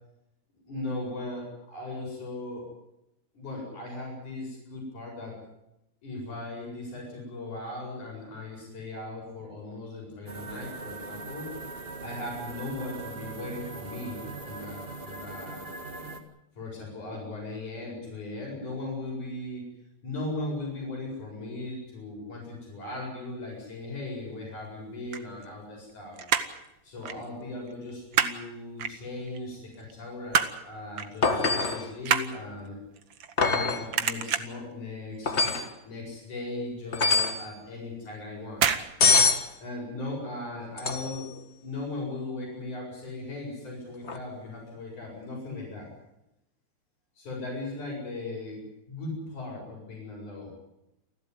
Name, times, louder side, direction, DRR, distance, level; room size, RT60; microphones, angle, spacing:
voice 1, 0.7-2.7 3.3-5.4 6.0-11.5 12.0-15.6 16.6-19.6 20.0-26.2 26.8-32.8 33.4-35.6 35.8-38.7 39.6-45.9 47.2-50.5, left 2 dB, 90° left, -2 dB, 9.3 m, -38 dB
sound 1, 10.3-16.2, right 3 dB, 25° right, 1.7 m, -40 dB
sound 2, 24.9-25.9 26.2-26.7 27.0-27.2 27.5-28.4 28.8-29.4 29.8-30.6 31.0-31.2 31.5-33.6 33.9-34.7 35.1-35.4 35.7-35.8 36.2-36.3 36.7-36.8 37.6-37.9 38.5-38.9 39.2-39.3, right 7 dB, 55° right, 1.5 m, -28 dB
sound 3, 31.2-31.9 33.4-33.9 35.3-35.7 36.9-37.4 39.0-39.5 40.8-41.3 44.0-44.2, left 4 dB, 30° left, 1.5 m, -24 dB
30.0 x 12.0 x 9.9 m, 0.87 s
omnidirectional pair, 3.4 m